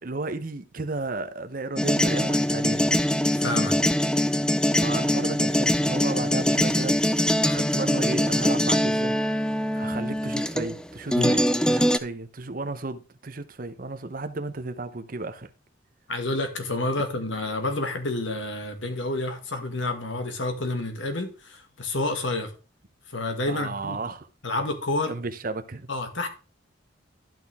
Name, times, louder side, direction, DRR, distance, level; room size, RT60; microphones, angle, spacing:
voice 1, 0.0-2.9 4.8-7.0 7.5-9.2 9.7-15.5 23.5-24.3 25.1-25.9, right 3 dB, 45° right, 0.8 m, -33 dB
sound 1, 1.8-10.8 11.1-12.0, equal, 5° left, 0.4 m, -23 dB
voice 2, 3.2-3.8 11.1-11.4 16.1-22.5 23.1-24.0 24.4-25.1 25.9-26.3, left 2 dB, 75° left, 1.9 m, -29 dB
12.0 x 6.1 x 3.5 m
head